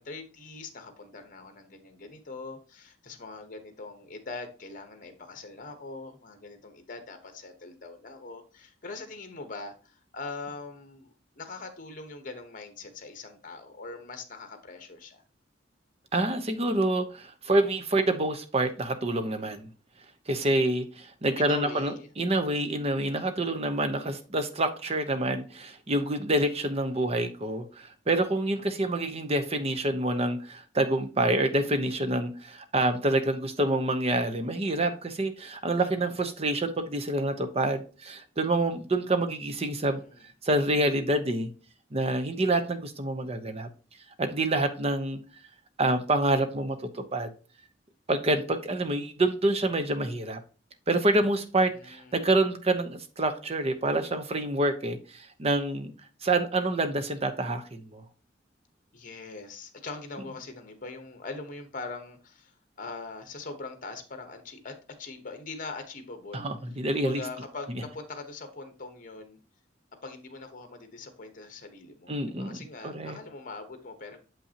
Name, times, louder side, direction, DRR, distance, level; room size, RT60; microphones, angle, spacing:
voice 1, 0.0-15.2 20.3-20.7 21.4-22.1 27.0-27.3 35.8-36.1 40.0-40.3 51.7-52.2 58.9-62.5 62.8-66.5 67.0-69.4 70.0-74.2, left 3 dB, 45° left, 1.2 m, -42 dB
voice 2, 16.1-19.7 20.3-40.0 40.4-41.5 41.9-43.7 44.2-45.2 45.8-47.3 48.1-50.4 50.9-55.9 56.2-58.0 66.3-67.2 72.1-72.6 72.8-73.2, right 2 dB, 35° right, 0.8 m, -27 dB
7.2 x 5.7 x 2.8 m
head